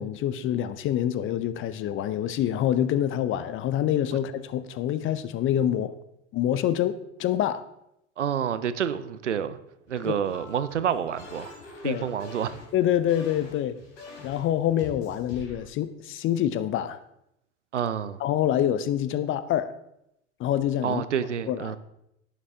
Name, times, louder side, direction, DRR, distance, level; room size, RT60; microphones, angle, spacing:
voice 1, 0.0-5.9 6.3-7.6 10.0-10.2 11.8-12.0 12.7-13.8 14.2-17.0 18.2-19.7 20.4-21.0 21.5-21.8, left 11 dB, 35° left, 0.7 m, -26 dB
voice 2, 8.2-9.6 9.9-11.5 11.8-12.6 17.7-18.2 20.8-21.8, right 8 dB, 85° right, 0.6 m, -28 dB
sound 1, 9.9-15.6, left 2 dB, 60° left, 3.5 m, -45 dB
11.0 x 9.0 x 3.7 m
figure-of-eight pair, 80°, 35 cm